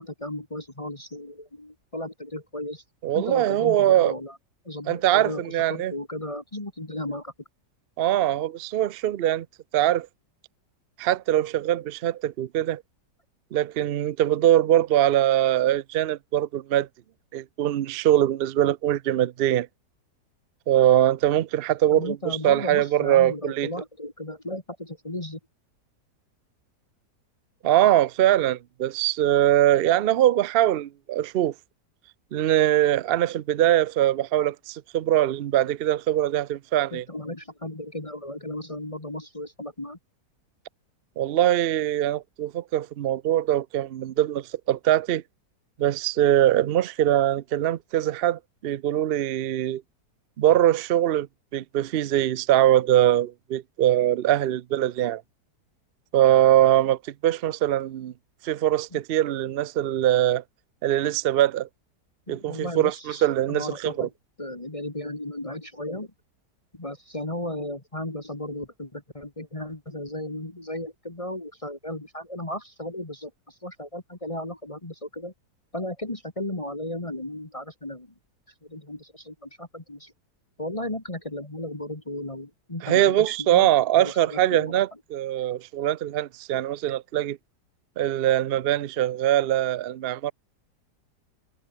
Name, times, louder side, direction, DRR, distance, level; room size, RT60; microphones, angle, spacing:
voice 1, 0.0-2.8 3.1-4.4 4.6-7.3 21.9-25.4 36.9-40.0 58.9-59.0 62.3-64.1 64.4-66.1 66.7-75.3 75.7-78.1 78.7-80.1 80.6-83.7 84.0-84.7, left 1 dB, 20° left, 2.1 m, -35 dB
voice 2, 3.0-4.1 4.9-5.9 8.0-9.5 9.7-10.1 11.0-12.8 13.5-16.9 17.3-19.7 20.7-23.7 27.6-31.5 32.3-37.0 41.2-45.2 45.8-49.8 50.4-51.3 51.5-55.2 56.1-58.1 58.4-60.4 60.8-61.7 62.3-64.1 82.8-87.4 88.0-90.3, right 12 dB, 85° right, 0.5 m, -22 dB
omnidirectional pair, 1.8 m